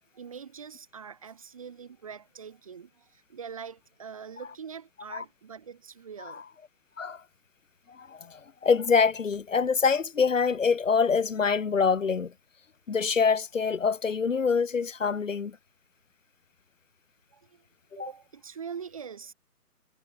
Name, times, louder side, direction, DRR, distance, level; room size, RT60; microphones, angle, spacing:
voice 1, 0.1-6.4 17.3-17.6 18.0-19.3, right 7 dB, 20° right, 1.5 m, -43 dB
voice 2, 7.9-12.3 12.9-15.6, left 5 dB, 50° left, 1.6 m, -25 dB
figure-of-eight pair, 165°, 47 cm